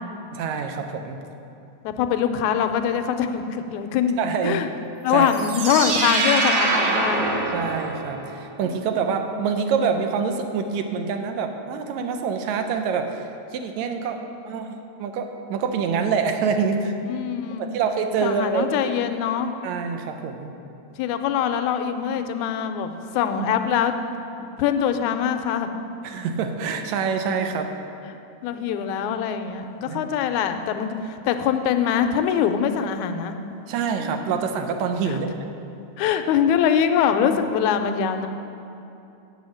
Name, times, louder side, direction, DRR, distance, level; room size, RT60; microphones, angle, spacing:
voice 1, 0.3-1.2 4.2-4.6 5.1-5.3 7.5-14.2 14.5-14.7 15.0-17.0 17.6-18.9 19.6-20.5 23.2-23.3 24.4-24.5 26.0-27.7 29.9-30.0 33.7-35.5, right 6 dB, 85° right, 6 dB, 1.9 m, -26 dB
voice 2, 1.8-4.7 5.0-7.2 14.5-14.7 17.1-17.8 18.2-19.5 21.0-23.9 24.6-25.7 28.4-33.4 35.1-35.2 36.0-38.3, left 8 dB, 85° left, 7 dB, 1.9 m, -23 dB
sound 1, 5.2-8.4, right 3 dB, 65° right, 1.7 m, -24 dB
8.2 x 7.1 x 6.3 m, 2.7 s
omnidirectional pair, 3.3 m